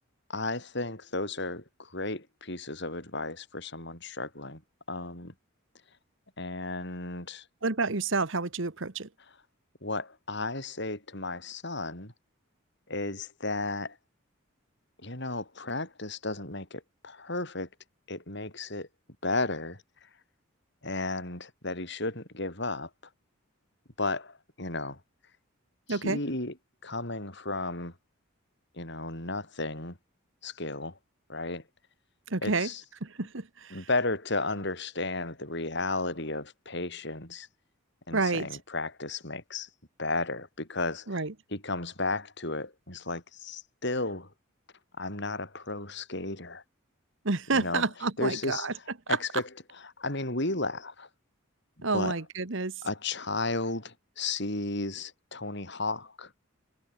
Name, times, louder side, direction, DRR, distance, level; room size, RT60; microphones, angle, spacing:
voice 1, 0.3-4.6 4.9-5.3 6.4-7.4 9.8-12.1 12.9-14.0 15.0-17.7 18.1-18.9 19.2-19.8 20.8-22.9 24.0-25.0 25.9-26.5 26.8-27.9 28.7-30.0 30.4-31.0 31.3-31.6 32.4-32.8 33.7-37.5 38.1-39.7 40.0-41.2 41.5-44.3 45.0-46.6 47.5-47.9 48.2-48.7 49.1-49.4 49.7-51.1 51.8-52.2 52.8-56.3, left 2 dB, 55° left, 7.3 m, -34 dB
voice 2, 7.6-9.1 25.9-26.2 32.3-32.7 33.0-33.8 38.1-38.5 41.1-41.3 47.2-48.7 51.8-52.7, right 3 dB, 65° right, 1.4 m, -29 dB
head